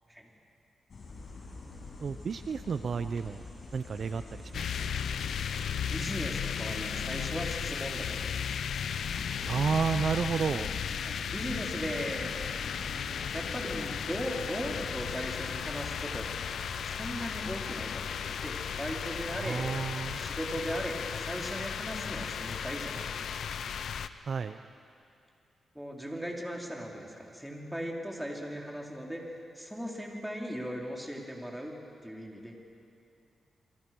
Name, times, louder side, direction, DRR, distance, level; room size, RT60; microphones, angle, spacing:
sound 1, 0.9-16.8, left 3 dB, 55° left, 6.3 m, -45 dB
voice 1, 2.0-3.4 3.7-5.0 9.5-10.7 19.4-20.2 24.2-24.6, right 6 dB, 60° right, 10 dB, 0.7 m, -31 dB
sound 2, 4.5-24.1, left 7 dB, 75° left, 0.8 m, -35 dB
voice 2, 5.7-8.6 11.0-12.3 13.3-16.3 16.8-19.6 20.2-23.3 25.7-31.7 32.0-32.6, equal, 5° right, -1 dB, 4.7 m, -38 dB
29.5 x 23.0 x 6.3 m, 2.5 s
cardioid pair, 65°, 0 cm